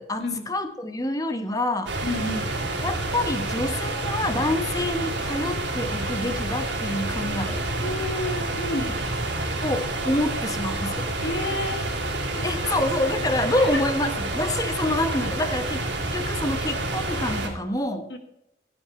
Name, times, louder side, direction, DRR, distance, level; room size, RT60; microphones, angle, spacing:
voice 1, 0.0-1.9 2.8-7.7 9.6-11.1 12.4-15.8 16.1-18.1, left 1 dB, 20° left, 9 dB, 0.9 m, -27 dB
sound 1, 1.9-17.5, right 2 dB, 90° right, 3.3 m, -28 dB
voice 2, 2.0-2.6 7.8-8.9 11.2-11.9 12.3-12.8 13.4-13.8 18.1-18.2, left 1 dB, 70° left, 6 dB, 1.7 m, -31 dB
16.0 x 7.8 x 4.3 m, 0.85 s
head